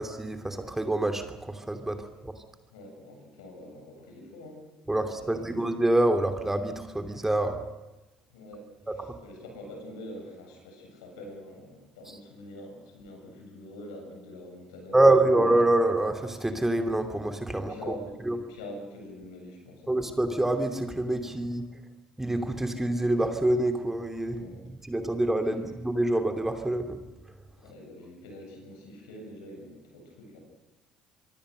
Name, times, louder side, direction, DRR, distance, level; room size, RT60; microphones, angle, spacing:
voice 1, 0.0-2.3 4.9-7.6 8.9-9.1 14.9-17.9 18.2-18.4 19.9-21.7 22.2-24.4 24.7-27.0, right 1 dB, 10° right, 7 dB, 2.9 m, -26 dB
voice 2, 2.7-4.6 5.2-5.5 8.3-8.7 9.2-15.3 17.5-18.2 18.5-19.9 24.3-24.6 25.4-25.7 27.6-30.4, left 1 dB, 75° left, 2 dB, 7.6 m, -45 dB
26.0 x 23.5 x 6.6 m, 1.0 s
figure-of-eight pair, 55°, 3 cm